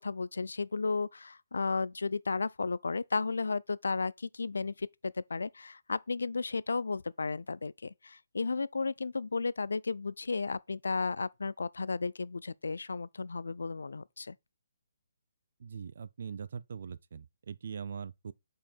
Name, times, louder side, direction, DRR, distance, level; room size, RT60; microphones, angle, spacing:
voice 1, 0.0-14.3, left 4 dB, 80° left, 0.4 m, -34 dB
voice 2, 15.6-18.3, right 6 dB, 60° right, 0.5 m, -41 dB
5.5 x 4.9 x 4.4 m
figure-of-eight pair, 145°, 0 cm